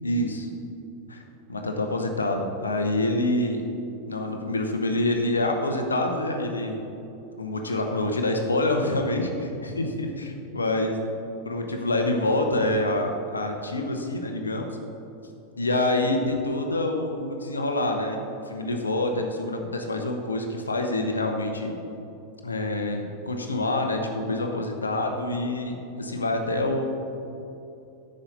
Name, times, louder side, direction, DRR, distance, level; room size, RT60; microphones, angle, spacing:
voice 1, 0.0-0.4 1.1-1.2 1.5-3.6 4.1-6.8 7.3-11.0 11.4-14.6 15.6-21.8 22.4-26.8, left 2 dB, 75° left, 3 dB, 0.8 m, -26 dB
9.7 x 6.4 x 4.0 m, 2.8 s
figure-of-eight pair, 90°, 0 cm